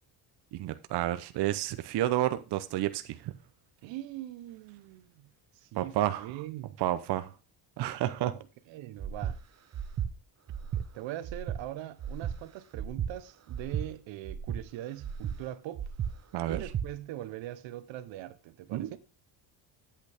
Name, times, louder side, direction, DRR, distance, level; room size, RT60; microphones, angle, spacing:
voice 1, 0.5-3.3 5.8-6.3 6.8-7.3 7.8-8.3 16.3-16.6 18.7-19.0, right 14 dB, 65° right, 0.7 m, -30 dB
voice 2, 3.8-5.3 5.5-6.8 8.2-8.4 8.7-9.4 10.7-15.9 16.5-19.0, right 14 dB, 85° right, 1.0 m, -42 dB
Breathing, 9.0-9.4 9.7-10.1 10.5-10.9 11.2-11.6 12.0-12.4 12.7-13.1 13.5-13.9 14.2-14.6 15.0-15.4 15.8-16.1 16.5-16.9, right 8 dB, 35° right, 0.9 m, -34 dB
8.4 x 8.1 x 3.4 m
cardioid pair, 115°, 44 cm